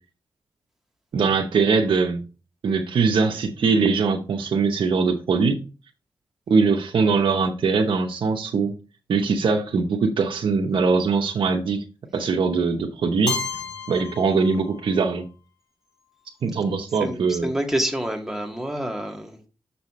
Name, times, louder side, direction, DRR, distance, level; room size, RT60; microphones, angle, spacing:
voice 1, 1.1-2.2 2.6-5.6 6.5-8.7 9.1-11.8 12.1-13.4 13.9-15.3 16.4-17.5, right 4 dB, 75° right, 0.9 m, -21 dB
Keyboard (musical), 13.3-15.2, left 5 dB, 55° left, 2.6 m, -32 dB
voice 2, 17.0-19.5, equal, 5° right, 1.8 m, -28 dB
6.5 x 5.7 x 3.1 m
cardioid pair, 70°, 9 cm